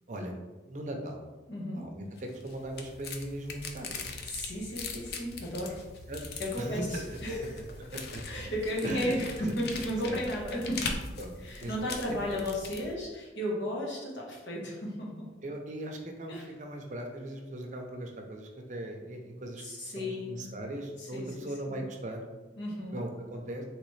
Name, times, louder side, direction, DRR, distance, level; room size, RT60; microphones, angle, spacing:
voice 1, 0.7-1.2 1.7-4.1 6.1-6.2 6.6-7.2 7.9-8.2 8.8-9.1 10.0-10.2 11.2-11.3 11.6-11.7 15.4-19.6 19.9-22.3 22.9-23.6, right 1 dB, 45° right, 2 dB, 0.5 m, -38 dB
voice 2, 1.5-1.9 4.2-5.9 6.4-7.7 7.9-11.0 11.4-15.3 16.3-16.4 19.6-20.5 21.0-21.8 22.6-23.0, equal, 85° left, -3 dB, 1.1 m, -34 dB
sound 1, 2.2-12.9, left 4 dB, 60° left, 0.4 m, -41 dB
4.0 x 2.9 x 3.1 m, 1.2 s
head